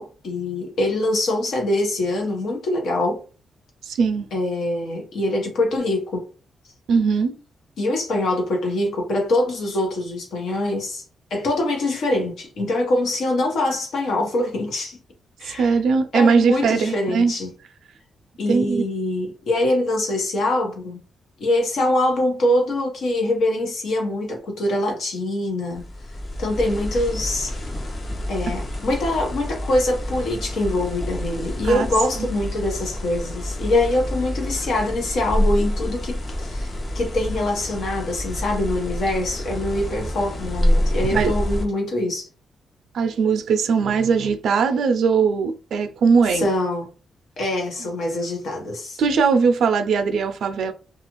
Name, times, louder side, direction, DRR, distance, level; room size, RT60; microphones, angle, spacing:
voice 1, 0.0-3.2 4.3-6.3 7.8-11.0 11.3-15.0 15.4-15.8 16.1-17.5 18.4-21.0 21.4-25.8 26.4-27.5 28.3-42.3 46.3-46.9 47.4-49.0, left 1 dB, 70° left, 0.9 m, -24 dB
voice 2, 3.8-4.3 6.9-7.4 15.4-17.3 18.5-18.8 31.6-31.9 32.2-32.3 41.0-41.3 42.9-46.5 49.0-50.7, right 5 dB, 70° right, 0.4 m, -20 dB
sound 1, 25.7-41.7, left 1 dB, 40° left, 0.7 m, -27 dB
2.4 x 2.4 x 3.0 m
cardioid pair, 140°, 0 cm